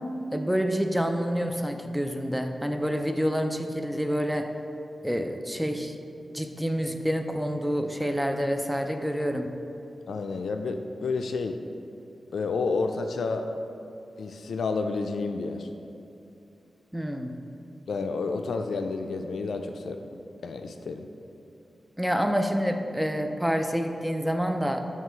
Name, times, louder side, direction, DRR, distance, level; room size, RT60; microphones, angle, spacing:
voice 1, 0.3-4.5 5.0-5.9 6.3-9.5 16.9-17.3 22.0-24.9, equal, 5° right, 5 dB, 0.3 m, -27 dB
voice 2, 10.1-11.6 12.3-13.5 14.2-15.7 17.9-20.0 20.4-21.1, left 4 dB, 85° left, 6 dB, 0.3 m, -30 dB
7.6 x 3.0 x 4.4 m, 2.6 s
wide cardioid pair, 150°, 0 cm